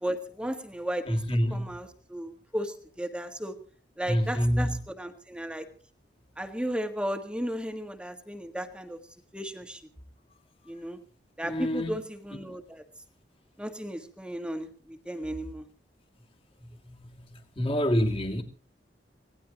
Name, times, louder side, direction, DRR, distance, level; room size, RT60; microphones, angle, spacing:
voice 1, 0.0-1.2 1.5-3.5 4.0-5.7 6.4-9.0 9.3-9.8 10.7-11.0 11.4-12.8 13.6-15.6, equal, 5° right, 1.6 m, -35 dB
voice 2, 1.1-1.7 4.1-4.8 11.4-12.0 16.8-18.4, equal, 30° left, 2.5 m, -27 dB
25.5 x 18.0 x 3.0 m
head